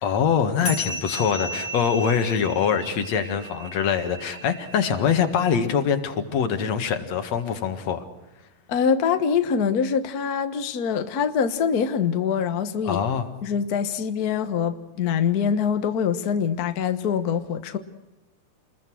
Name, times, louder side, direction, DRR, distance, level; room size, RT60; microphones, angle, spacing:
voice 1, 0.0-8.0 12.8-13.3, left 7 dB, 55° left, 2.8 m, -24 dB
sound 1, 0.6-5.5, equal, 20° left, 2.5 m, -35 dB
voice 2, 8.7-13.0 13.4-17.8, left 7 dB, 85° left, 0.8 m, -24 dB
28.5 x 21.0 x 6.4 m
omnidirectional pair, 3.8 m